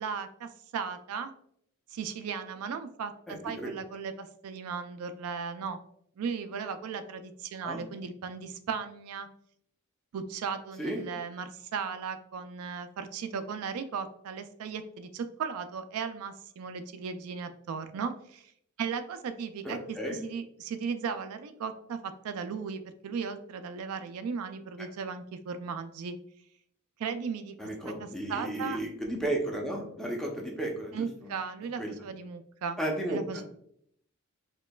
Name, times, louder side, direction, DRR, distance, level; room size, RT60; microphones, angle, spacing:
voice 1, 0.0-1.3 1.9-5.8 6.2-9.3 10.1-18.5 18.8-26.2 27.0-27.5 27.9-28.8 30.9-32.8 33.1-33.4, right 6 dB, 85° right, 9 dB, 0.4 m, -36 dB
voice 2, 3.3-3.7 7.6-7.8 10.8-11.1 19.6-20.2 27.6-31.3 31.8-32.0 32.8-33.4, right 1 dB, ahead, -1 dB, 0.6 m, -34 dB
4.4 x 2.9 x 2.3 m, 0.69 s
head